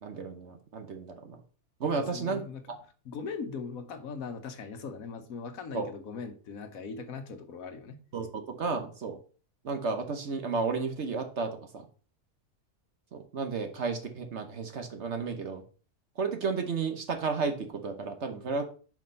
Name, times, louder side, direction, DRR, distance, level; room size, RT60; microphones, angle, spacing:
voice 1, 0.0-1.4 1.8-2.4 2.7-2.8 5.7-5.9 8.1-9.2 9.6-11.9 13.1-15.6 16.2-18.6, right 4 dB, 50° right, 6 dB, 1.1 m, -32 dB
voice 2, 2.0-2.6 3.0-8.0, left 5 dB, 65° left, 8 dB, 1.3 m, -40 dB
5.8 x 5.1 x 5.3 m, 0.39 s
omnidirectional pair, 1.6 m